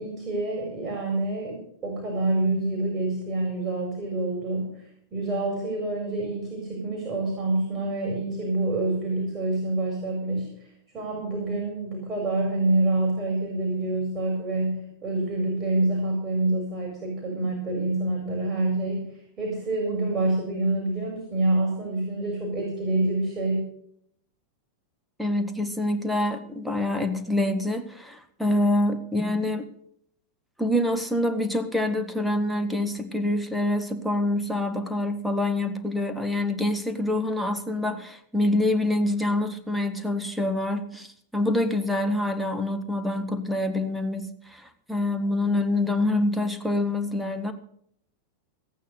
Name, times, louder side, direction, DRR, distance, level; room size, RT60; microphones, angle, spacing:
voice 1, 0.0-4.8 5.1-10.5 10.9-23.7, right 2 dB, 25° right, -1 dB, 4.9 m, -27 dB
voice 2, 25.2-29.7 30.6-47.5, left 1 dB, ahead, 6 dB, 1.5 m, -26 dB
15.5 x 9.1 x 6.7 m, 0.68 s
figure-of-eight pair, 90°, 0 cm